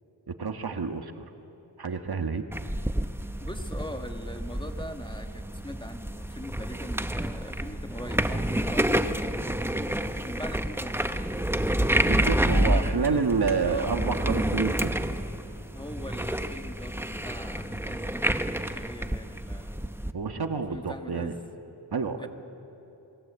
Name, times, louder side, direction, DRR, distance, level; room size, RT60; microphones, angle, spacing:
voice 1, 0.3-1.2 1.8-2.4 12.0-14.9 20.1-21.3 21.9-22.3, right 5 dB, 55° right, 6 dB, 1.5 m, -29 dB
sound 1, 2.5-20.1, right 1 dB, 5° right, 0.9 m, -29 dB
voice 2, 3.4-11.4 12.2-13.3 13.7-13.9 15.7-19.8 20.7-21.4 22.2-22.3, left 1 dB, 10° left, 5 dB, 1.7 m, -42 dB
28.0 x 21.5 x 8.2 m, 2.9 s
wide cardioid pair, 80°, 44 cm